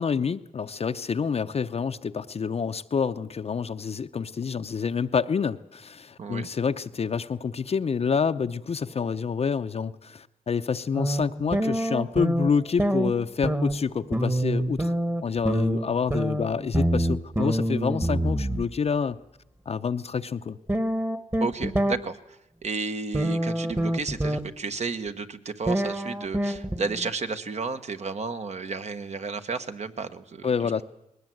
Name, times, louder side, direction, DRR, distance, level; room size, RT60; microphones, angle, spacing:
voice 1, 0.0-14.9 15.2-19.2 19.7-20.6 30.4-30.8, left 6 dB, 45° left, 9 dB, 0.7 m, -27 dB
sound 1, 10.9-12.5 12.8-18.6 20.7-22.0 23.1-24.4 25.7-27.1, right 1 dB, 15° right, 1.4 m, -26 dB
voice 2, 21.4-30.7, right 4 dB, 50° right, 8 dB, 1.4 m, -32 dB
20.5 x 19.0 x 7.8 m, 0.87 s
cardioid pair, 80°, 14 cm